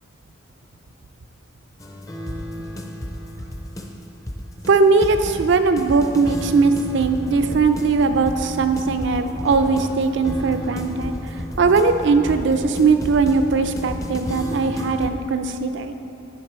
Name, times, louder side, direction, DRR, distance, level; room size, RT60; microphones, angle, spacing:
sound 1, 1.8-15.1, equal, 15° left, 0.5 m, -32 dB
voice 1, 4.7-15.9, right 4 dB, 60° right, 8 dB, 0.4 m, -19 dB
9.3 x 5.3 x 4.3 m, 2.7 s
head